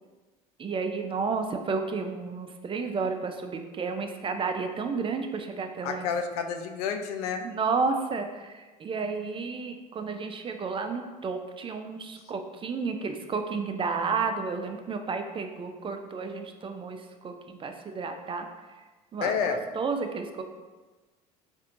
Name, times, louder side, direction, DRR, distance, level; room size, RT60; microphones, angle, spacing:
voice 1, 0.6-6.1 7.4-18.5 19.1-20.4, right 4 dB, 25° right, 6 dB, 0.4 m, -32 dB
voice 2, 5.8-7.5 19.2-19.6, left 6 dB, 75° left, 6 dB, 0.4 m, -29 dB
4.2 x 2.6 x 2.5 m, 1.3 s
hypercardioid pair, 70°, 20 cm